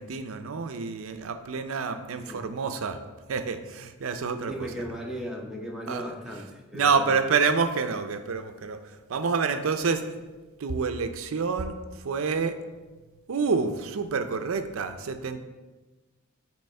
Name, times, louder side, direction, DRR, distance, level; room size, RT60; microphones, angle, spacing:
voice 1, 0.0-3.0 3.3-4.5 4.9-5.0 5.9-6.1 6.7-8.8 9.1-10.2 10.6-11.7 12.0-12.5 13.3-15.4, right 5 dB, 70° right, 9 dB, 0.5 m, -28 dB
voice 2, 2.1-2.5 4.4-7.2, equal, 5° right, -1 dB, 0.8 m, -37 dB
8.9 x 3.0 x 4.3 m, 1.2 s
head